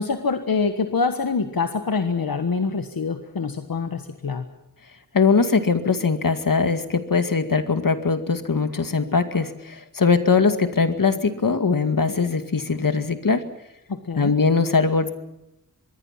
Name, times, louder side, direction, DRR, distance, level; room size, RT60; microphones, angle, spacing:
voice 1, 0.0-4.4 12.1-12.2 13.9-14.4, left 4 dB, 85° left, 7 dB, 1.5 m, -25 dB
voice 2, 5.1-13.4 14.2-15.1, left 4 dB, 70° left, 8 dB, 2.2 m, -21 dB
25.5 x 22.0 x 5.8 m, 0.90 s
wide cardioid pair, 85°, 34 cm